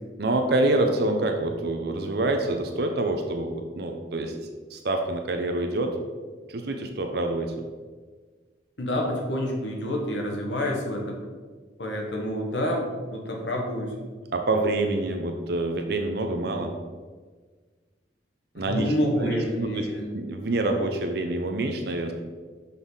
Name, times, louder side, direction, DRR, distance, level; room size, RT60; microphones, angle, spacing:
voice 1, 0.2-4.3 4.7-6.0 6.5-7.5 14.3-16.7 18.5-19.9 20.1-22.1, right 2 dB, 60° right, 4 dB, 0.6 m, -26 dB
voice 2, 8.8-11.2 11.8-12.8 13.1-13.9 18.6-20.1, equal, 75° left, 0 dB, 1.4 m, -28 dB
6.2 x 5.4 x 3.9 m, 1.4 s
head